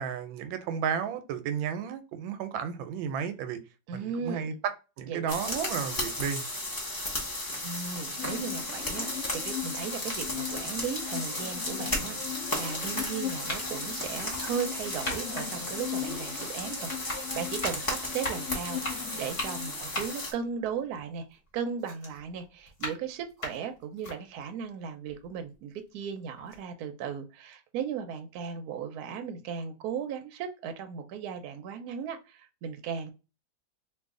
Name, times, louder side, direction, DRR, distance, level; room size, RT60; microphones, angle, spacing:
voice 1, 0.0-3.6 3.9-6.4, right 7 dB, 90° right, 1.4 m, -33 dB
voice 2, 3.9-4.5 5.1-5.7 7.6-33.1, right 7 dB, 70° right, 1.0 m, -36 dB
sound 1, 5.3-20.3, left 1 dB, 20° left, 0.6 m, -35 dB
sound 2, 8.2-20.0, left 10 dB, 75° left, 0.7 m, -40 dB
sound 3, 10.5-10.6 11.4-11.5 12.5-12.8 13.3-16.6 16.9-21.5 21.8-24.2 24.7-24.8 25.1-26.0 26.4-26.6, left 2 dB, 35° left, 1.3 m, -39 dB
3.1 x 2.5 x 3.6 m
omnidirectional pair, 2.1 m